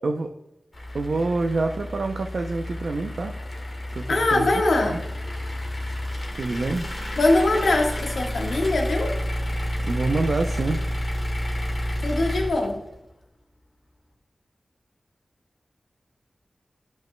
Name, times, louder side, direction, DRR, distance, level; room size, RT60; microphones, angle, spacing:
sound 1, 0.7-13.1, left 1 dB, 35° left, 1.6 m, -30 dB
voice 1, 0.9-3.4 3.9-4.5 4.8-5.0 6.3-6.9 9.8-10.8, right 3 dB, 70° right, 4 dB, 0.5 m, -26 dB
voice 2, 4.1-5.0 7.2-9.2 12.0-12.8, left 2 dB, 90° left, 1 dB, 1.5 m, -22 dB
10.5 x 5.4 x 2.2 m, 0.92 s
wide cardioid pair, 75°, 0 cm